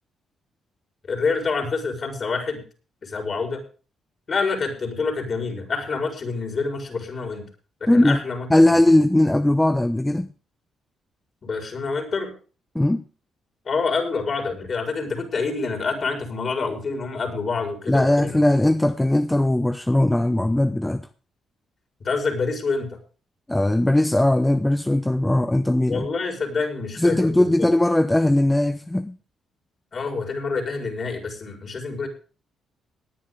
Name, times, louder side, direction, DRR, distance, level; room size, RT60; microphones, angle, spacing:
voice 1, 1.1-2.6 3.0-3.6 4.3-7.5 7.8-8.5 11.4-12.3 13.7-18.4 22.0-22.9 25.9-27.5 29.9-32.1, left 4 dB, 45° left, 5.1 m, -27 dB
voice 2, 7.9-8.2 8.5-10.3 12.7-13.0 17.9-21.0 23.5-26.1 27.0-29.2, left 1 dB, 10° left, 0.8 m, -19 dB
18.5 x 10.0 x 3.8 m
cardioid pair, 90°, 0 cm